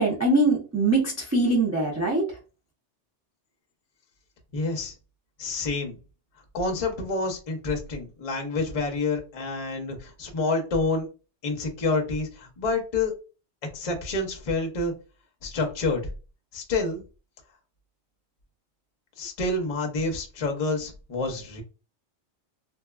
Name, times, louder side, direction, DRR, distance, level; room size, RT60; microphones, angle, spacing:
voice 1, 0.0-2.4, right 2 dB, 25° right, -2 dB, 0.4 m, -23 dB
voice 2, 4.5-4.9 5.4-6.0 6.5-11.1 11.4-13.1 13.7-14.9 15.4-16.0 16.5-17.0 19.2-21.6, left 3 dB, 40° left, 2 dB, 0.6 m, -28 dB
2.7 x 2.3 x 2.2 m, 0.33 s
omnidirectional pair, 1.2 m